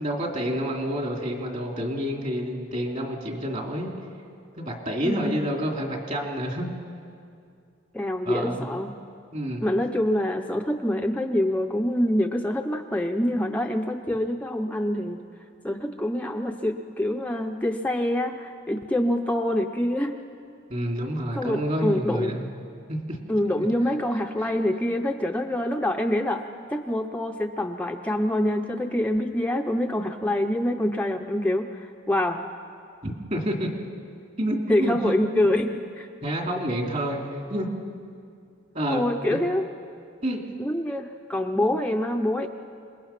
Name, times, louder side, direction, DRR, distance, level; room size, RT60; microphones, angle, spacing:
voice 1, 0.0-3.9 4.6-6.8 8.2-8.7 9.3-9.6 20.7-22.5 22.9-23.2 23.6-23.7 24.4-24.5 33.0-33.7 34.4-35.4 36.2-37.7 38.7-39.0 39.3-39.4 40.2-40.4, equal, 40° right, 1 dB, 2.9 m, -28 dB
voice 2, 5.0-5.4 7.9-8.9 9.6-15.2 15.6-20.2 21.3-22.4 23.3-32.4 34.7-36.1 38.9-39.7 40.6-42.5, left 1 dB, 10° left, 3 dB, 0.6 m, -26 dB
27.5 x 20.5 x 5.8 m, 2.4 s
head